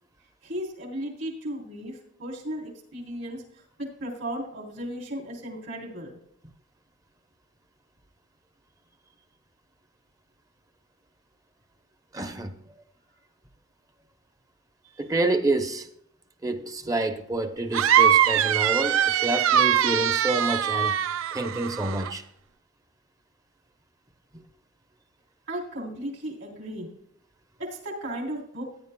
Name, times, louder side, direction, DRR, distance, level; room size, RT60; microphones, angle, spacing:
voice 1, 0.4-6.2 14.8-15.1 25.5-26.9 27.6-28.7, right 1 dB, 65° right, 3.6 m, -35 dB
voice 2, 12.1-12.6 15.0-15.9 16.4-21.0 21.3-22.2 24.3-24.4, right 2 dB, 15° right, 0.7 m, -28 dB
sound 1, 17.7-22.1, right 9 dB, 80° right, 0.4 m, -22 dB
15.0 x 10.5 x 2.3 m
head